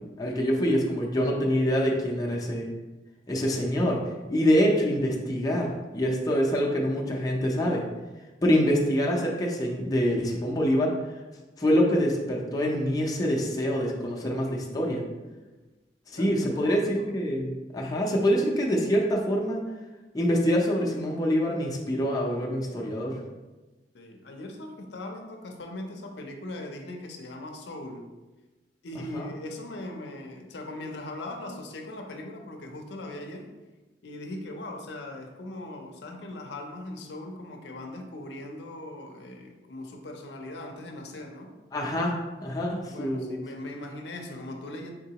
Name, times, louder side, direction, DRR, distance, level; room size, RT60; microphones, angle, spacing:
voice 1, 0.2-2.7 3.3-4.0 4.3-7.8 8.4-10.9 11.6-15.0 16.1-19.6 20.1-23.2 29.1-29.3 41.7-42.1 42.4-43.4, equal, 20° left, -2 dB, 0.5 m, -25 dB
voice 2, 15.2-15.5 16.2-17.2 23.9-28.0 28.8-33.5 34.0-41.5 42.9-44.9, left 1 dB, 75° left, 2 dB, 0.6 m, -40 dB
3.8 x 3.7 x 2.8 m, 1.2 s
head